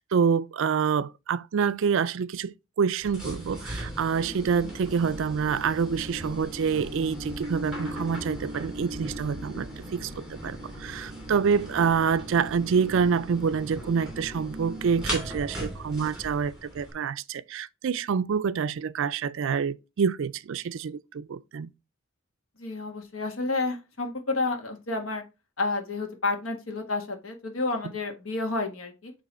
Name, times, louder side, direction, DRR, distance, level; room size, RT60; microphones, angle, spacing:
voice 1, 0.1-21.7, right 6 dB, 65° right, 0.4 m, -27 dB
sound 1, 3.0-16.9, right 1 dB, 5° right, 2.7 m, -37 dB
voice 2, 22.6-25.2 25.6-29.1, left 3 dB, 70° left, 1.5 m, -30 dB
8.4 x 3.1 x 4.2 m
head